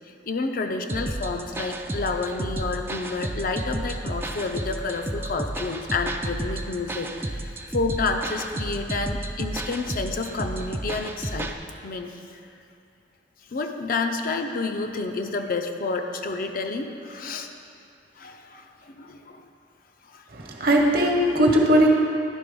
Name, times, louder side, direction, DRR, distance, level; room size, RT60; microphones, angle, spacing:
voice 1, 0.3-11.5 11.8-12.1 13.5-17.5 18.2-19.4 20.1-20.2, left 3 dB, 50° left, 4 dB, 0.5 m, -29 dB
sound 1, 0.9-11.6, right 1 dB, 15° right, 0.3 m, -32 dB
voice 2, 20.3-21.9, equal, 55° right, 0 dB, 1.0 m, -19 dB
11.0 x 3.9 x 5.2 m, 2.6 s
head